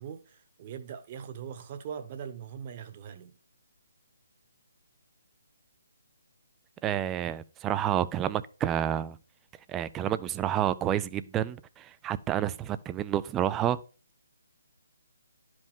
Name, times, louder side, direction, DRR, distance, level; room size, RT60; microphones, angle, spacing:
voice 1, 0.0-3.3, right 8 dB, 35° right, 1.2 m, -41 dB
voice 2, 6.8-9.2 9.5-13.8, right 11 dB, 15° right, 0.4 m, -29 dB
11.5 x 5.2 x 3.7 m
figure-of-eight pair, 145°, 0 cm